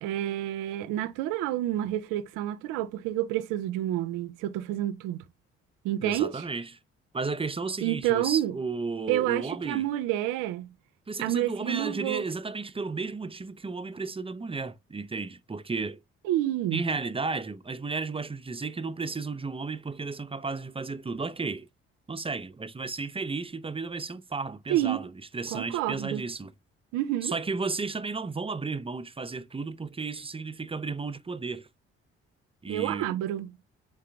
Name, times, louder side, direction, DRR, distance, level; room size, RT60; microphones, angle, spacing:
voice 1, 0.0-5.2 5.8-6.4 7.8-8.5 9.1-10.7 11.2-12.2 16.2-16.8 24.7-25.0 25.5-26.2 26.9-27.3 32.7-33.5, right 13 dB, 80° right, 0.5 m, -29 dB
voice 2, 6.0-6.7 7.1-9.8 11.1-16.0 16.7-21.7 22.1-26.5 27.2-31.7 32.6-33.2, right 4 dB, 20° right, 0.5 m, -33 dB
3.9 x 3.7 x 3.3 m
hypercardioid pair, 45°, 31 cm